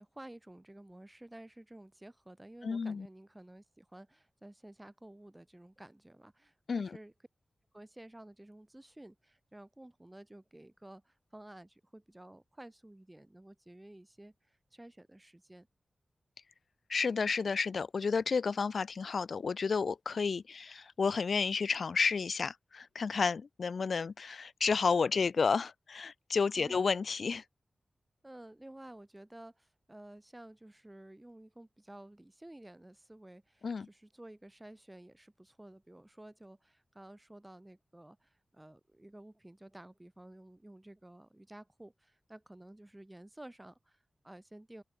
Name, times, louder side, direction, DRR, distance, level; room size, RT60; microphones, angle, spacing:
voice 1, 0.0-7.1 7.7-15.7 26.6-26.8 28.2-44.8, right 1 dB, 20° right, 3.5 m, -53 dB
voice 2, 2.6-3.1 6.7-7.0 16.9-27.4 33.6-33.9, left 5 dB, 80° left, 0.6 m, -31 dB
open air
cardioid pair, 55°, 0 cm